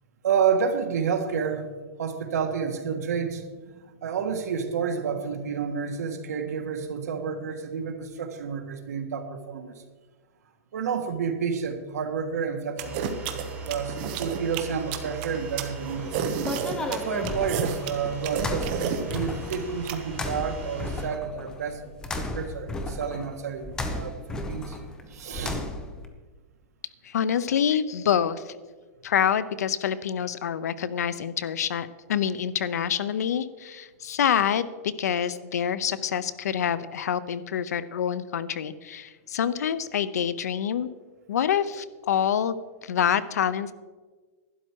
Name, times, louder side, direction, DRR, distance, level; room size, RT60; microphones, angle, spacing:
voice 1, 0.2-1.7 2.0-9.8 10.7-16.2 16.9-24.8 25.0-25.6, right 6 dB, 80° right, 6 dB, 1.5 m, -30 dB
sound 1, 12.8-21.0, right 2 dB, 20° right, 2.3 m, -40 dB
sound 2, 12.8-20.0, right 8 dB, 35° right, 0.9 m, -30 dB
sound 3, 15.8-26.0, left 2 dB, 10° left, 0.6 m, -34 dB
voice 2, 27.0-28.6 29.0-40.9 41.3-42.5 42.8-43.7, left 8 dB, 85° left, 15 dB, 0.7 m, -26 dB
12.0 x 10.0 x 4.6 m, 1.4 s
supercardioid pair, 170°, 8 cm